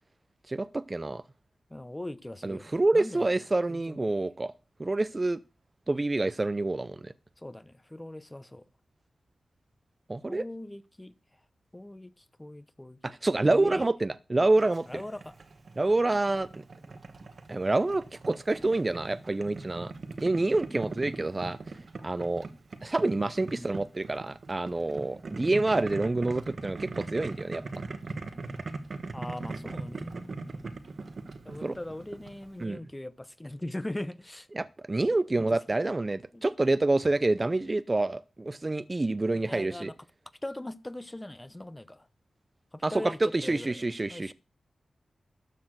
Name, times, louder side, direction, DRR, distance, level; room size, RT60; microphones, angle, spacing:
voice 1, 0.5-1.2 2.4-4.5 4.8-5.4 5.9-7.1 10.1-10.4 13.0-14.9 15.8-16.6 17.5-19.9 20.2-21.6 22.0-22.5 22.8-27.6 31.6-31.8 32.6-32.8 34.5-39.9 42.8-44.3, right 2 dB, 30° right, 0.5 m, -27 dB
voice 2, 1.7-3.3 3.7-4.1 7.4-8.7 10.3-11.1 11.7-13.0 13.5-13.8 14.9-15.3 23.6-23.8 29.1-30.4 31.4-34.5 35.4-35.5 36.3-36.4 39.3-39.9 40.4-42.1 42.7-43.8 44.1-44.3, left 1 dB, 15° left, 0.8 m, -40 dB
Boiling, 14.6-32.6, right 3 dB, 60° right, 1.4 m, -41 dB
13.0 x 4.3 x 7.8 m
cardioid pair, 70°, 0 cm